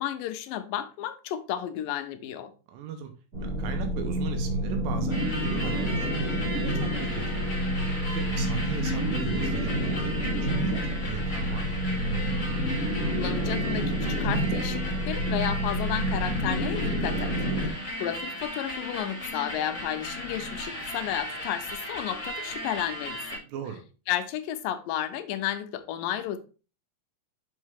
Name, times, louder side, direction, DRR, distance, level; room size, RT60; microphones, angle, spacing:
voice 1, 0.0-2.5 13.2-17.3 17.6-23.4 24.1-26.4, left 11 dB, 80° left, 2.3 m, -32 dB
voice 2, 2.7-3.1 3.4-6.1 6.4-7.6 8.1-11.8 23.4-23.8, right 8 dB, 90° right, 2.5 m, -38 dB
sound 1, 3.3-17.7, right 1 dB, 30° right, 2.1 m, -28 dB
sound 2, 5.1-23.4, left 1 dB, 20° left, 1.4 m, -36 dB
6.4 x 5.4 x 3.5 m
omnidirectional pair, 4.0 m